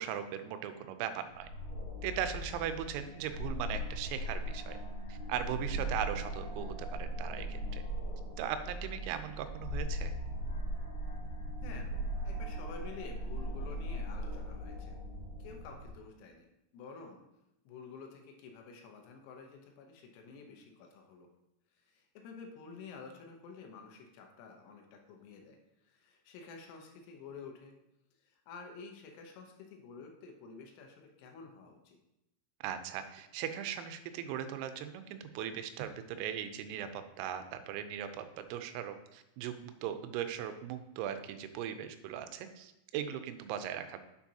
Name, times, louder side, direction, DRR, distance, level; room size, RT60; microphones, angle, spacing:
voice 1, 0.0-1.5 2.0-4.8 5.1-7.8 8.4-10.1 32.6-44.0, right 9 dB, 90° right, 9 dB, 3.4 m, -39 dB
sound 1, 1.3-15.9, equal, 50° left, 3.2 m, -39 dB
voice 2, 12.2-15.0 15.4-16.5 16.7-17.2 17.7-21.3 21.7-27.8 28.2-32.0, left 4 dB, 80° left, 2 dB, 3.5 m, -50 dB
8.9 x 7.1 x 2.8 m, 0.89 s
omnidirectional pair, 6.0 m